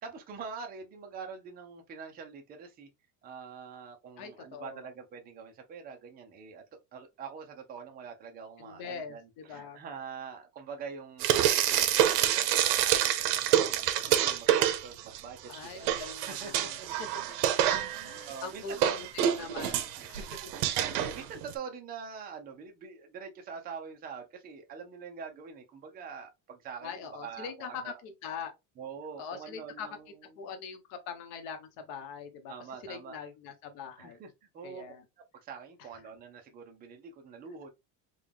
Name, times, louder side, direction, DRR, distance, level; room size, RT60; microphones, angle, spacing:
voice 1, 0.0-2.9 3.2-6.6 6.9-15.9 16.3-17.3 17.9-19.1 19.7-28.0 28.8-30.2 32.5-33.2 34.0-34.3 34.5-34.9 35.4-37.7, right 6 dB, 20° right, 0.5 m, -45 dB
voice 2, 4.2-4.9 8.6-9.8 15.5-17.1 17.7-20.2 26.8-28.5 29.2-29.9 30.4-32.5 32.8-34.2 34.6-35.0 35.8-35.9, left 6 dB, 65° left, 1.1 m, -42 dB
Frying (food), 11.2-15.2 15.5-21.5, right 11 dB, 80° right, 0.8 m, -27 dB
3.8 x 2.3 x 3.3 m
cardioid pair, 160°, 48 cm